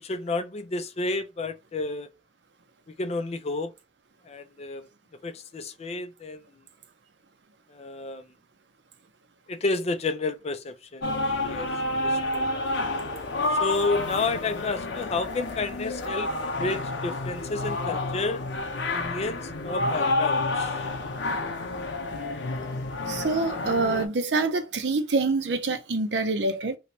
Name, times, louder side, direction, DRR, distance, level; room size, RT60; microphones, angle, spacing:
voice 1, 0.0-2.1 2.9-3.7 4.3-4.9 5.2-6.4 7.7-8.3 9.5-11.2 11.5-11.7 12.0-12.5 13.6-16.3 16.6-18.4 18.9-20.7, left 3 dB, 35° left, 0.4 m, -31 dB
sound 1, 11.0-24.1, left 2 dB, 90° left, 0.7 m, -29 dB
voice 2, 23.1-26.8, right 3 dB, 75° right, 0.7 m, -26 dB
3.1 x 2.9 x 2.9 m
head